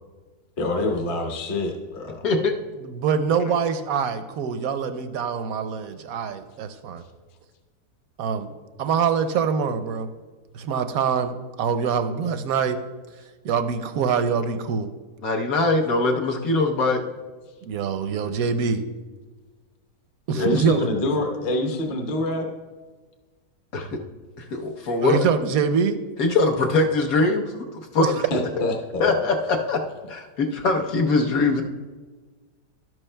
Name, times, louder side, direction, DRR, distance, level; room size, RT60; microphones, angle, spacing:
voice 1, 0.6-2.3 20.4-22.5 28.3-29.0, left 2 dB, 35° left, 2 dB, 1.0 m, -26 dB
voice 2, 2.2-2.6 15.2-17.0 20.3-20.5 23.7-24.0 24.5-25.3 26.2-27.4 27.9-28.4 29.0-29.8 30.1-31.6, left 3 dB, 60° left, 2 dB, 1.3 m, -22 dB
voice 3, 2.8-7.0 8.2-8.5 8.8-10.1 10.5-12.8 13.4-14.9 17.6-18.8 20.3-20.9 25.0-26.0 28.0-28.1, right 6 dB, 70° right, 10 dB, 0.9 m, -24 dB
12.5 x 11.0 x 2.2 m, 1.4 s
omnidirectional pair, 1.8 m